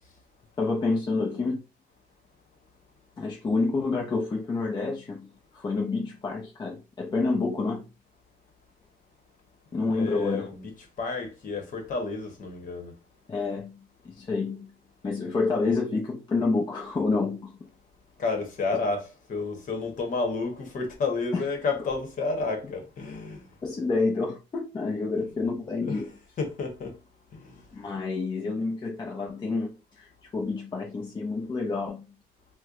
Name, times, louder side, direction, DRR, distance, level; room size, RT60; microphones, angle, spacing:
voice 1, 0.6-1.6 3.2-7.9 9.7-10.5 13.3-14.7 15.0-17.6 21.3-21.4 23.6-26.1 27.7-32.1, left 3 dB, 25° left, 0.7 m, -28 dB
voice 2, 10.0-10.7 11.0-12.9 18.2-23.5 25.0-25.3 25.8-26.0 26.4-26.9 27.3-27.6, left 4 dB, 50° left, 1.2 m, -31 dB
4.3 x 2.2 x 2.5 m
cardioid pair, 110°, 17 cm